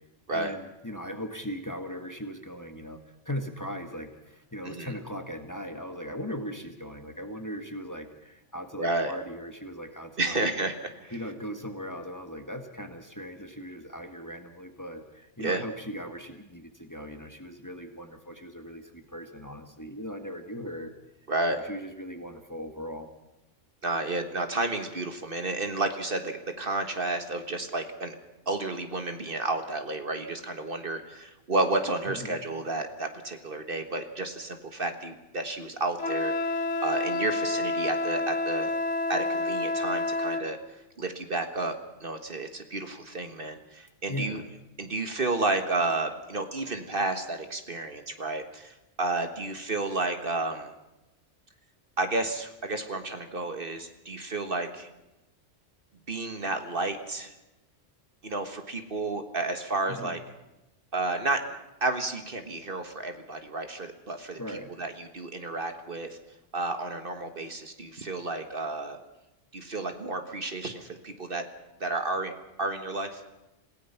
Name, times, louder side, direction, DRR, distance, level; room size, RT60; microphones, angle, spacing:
voice 1, 0.3-3.0 3.2-10.5 11.1-20.9 21.5-23.1 32.1-32.4 44.1-44.5 59.9-60.2 64.4-64.7, equal, 15° left, 6 dB, 1.6 m, -39 dB
voice 2, 4.6-5.0 8.8-9.1 10.2-11.1 15.4-15.6 21.3-21.6 23.8-28.2 28.5-36.3 36.8-38.7 39.1-40.6 41.0-44.4 44.8-50.7 52.0-54.9 56.1-57.3 58.2-60.2 60.9-61.4 61.8-64.4 64.8-66.2 66.5-69.0 69.5-71.4 71.8-72.3 72.6-73.2, right 2 dB, 50° right, 7 dB, 1.6 m, -31 dB
Wind instrument woodwind instrument, 36.0-40.5, left 2 dB, 70° left, 1.6 m, -29 dB
27.5 x 17.0 x 5.8 m, 0.99 s
omnidirectional pair, 1.3 m